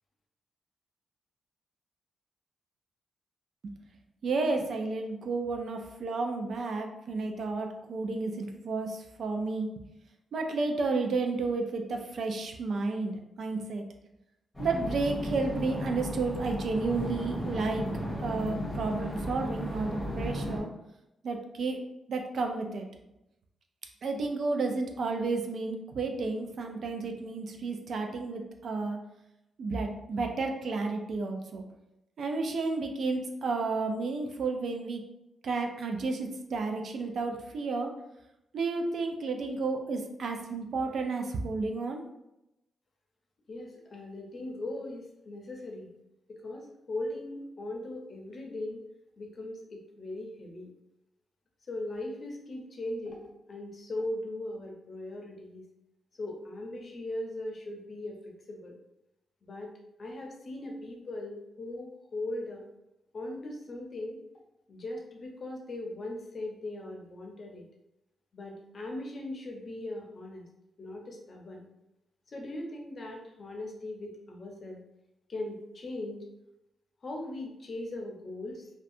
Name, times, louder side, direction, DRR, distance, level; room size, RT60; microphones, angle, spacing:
voice 1, 4.2-9.7 10.3-13.8 14.6-17.8 18.2-20.7 21.2-21.8 22.1-22.9 24.0-29.0 29.6-31.6 32.2-35.0 35.4-37.9 38.5-42.0, right 3 dB, 65° right, 4 dB, 0.4 m, -32 dB
sound 1, 14.5-20.6, equal, 10° left, 1.1 m, -35 dB
voice 2, 43.5-45.9 46.3-48.8 49.2-50.7 51.7-53.2 53.5-55.6 56.2-58.8 59.4-59.7 60.0-62.6 63.1-64.2 64.7-67.6 68.3-70.4 70.8-71.7 72.3-74.8 75.3-76.3 77.0-78.7, left 1 dB, 50° left, 0 dB, 0.6 m, -39 dB
2.4 x 2.2 x 2.6 m, 0.89 s
cardioid pair, 95°, 0 cm